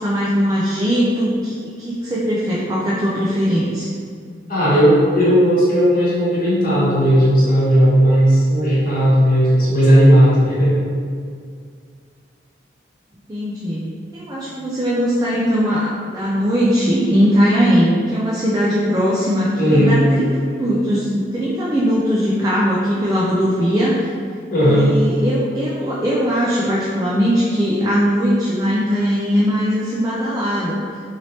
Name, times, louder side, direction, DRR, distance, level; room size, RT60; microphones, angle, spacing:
voice 1, 0.0-3.9 13.3-24.1 24.6-30.8, equal, 20° right, -7 dB, 0.3 m, -19 dB
voice 2, 4.5-10.7 19.6-20.0 24.5-24.9, equal, 50° left, -9 dB, 1.0 m, -14 dB
3.1 x 2.8 x 2.7 m, 2.2 s
head